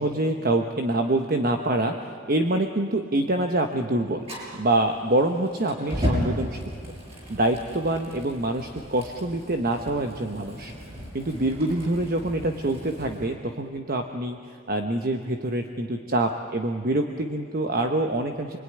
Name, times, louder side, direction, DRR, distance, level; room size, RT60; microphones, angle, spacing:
voice 1, 0.0-6.6 7.3-10.7 11.1-18.6, right 1 dB, 45° right, 5 dB, 1.1 m, -26 dB
Fire, 4.2-13.2, equal, 30° right, 6.9 m, -35 dB
28.5 x 21.0 x 9.9 m, 2.4 s
head